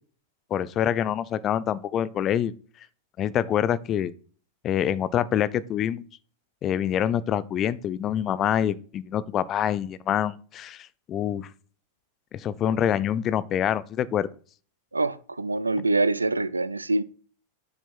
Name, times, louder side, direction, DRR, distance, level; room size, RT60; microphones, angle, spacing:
voice 1, 0.5-2.5 3.2-4.1 4.6-6.1 6.6-11.5 12.3-14.3, left 10 dB, 30° left, 0.5 m, -26 dB
voice 2, 14.9-17.0, right 2 dB, 80° right, 0.4 m, -25 dB
7.3 x 6.8 x 4.4 m
figure-of-eight pair, 90°, 0 cm